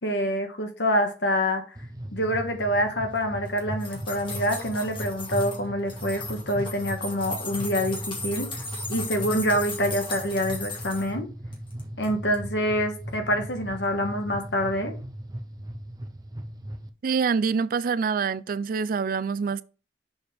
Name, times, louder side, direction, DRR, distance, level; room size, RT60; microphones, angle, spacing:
voice 1, 0.0-1.6 2.1-8.5 8.9-11.3 12.0-15.0, equal, 80° left, 1.5 m, -26 dB
sound 1, 1.7-16.9, right 1 dB, 20° right, 0.7 m, -38 dB
sound 2, 3.5-5.6 5.9-11.1 11.5-12.1 12.3-12.4, left 3 dB, 30° left, 2.2 m, -37 dB
voice 2, 17.0-19.6, right 5 dB, 50° right, 0.4 m, -25 dB
6.4 x 4.9 x 3.5 m
head